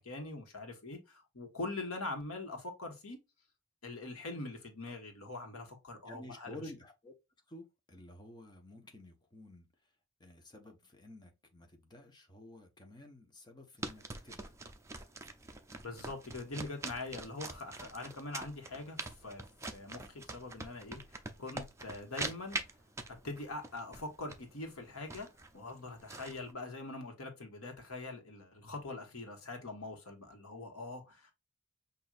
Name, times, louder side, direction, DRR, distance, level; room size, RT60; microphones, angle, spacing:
voice 1, 0.0-3.2 3.8-6.6 15.8-22.6 23.1-25.3 25.5-31.3, left 2 dB, 80° left, 1.5 m, -43 dB
voice 2, 6.1-7.1 7.5-9.7 10.2-14.5, left 1 dB, 20° left, 1.0 m, -52 dB
sound 1, 13.8-26.5, right 2 dB, 15° right, 0.5 m, -44 dB
6.1 x 2.7 x 2.5 m
head